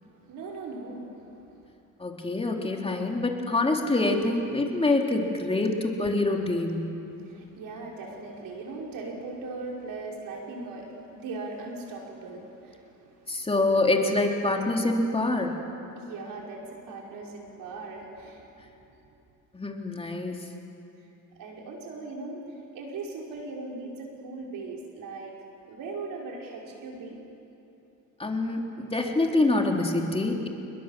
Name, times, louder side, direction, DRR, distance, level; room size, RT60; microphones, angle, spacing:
voice 1, 0.0-1.7 7.1-13.5 15.9-18.8 21.4-25.3 25.7-27.2, right 3 dB, 70° right, -1 dB, 5.8 m, -39 dB
voice 2, 2.0-6.9 7.4-7.5 13.3-15.6 19.5-20.5 28.2-30.5, left 2 dB, 15° left, 1 dB, 3.2 m, -26 dB
28.5 x 21.5 x 7.6 m, 2.9 s
cardioid pair, 95°, 34 cm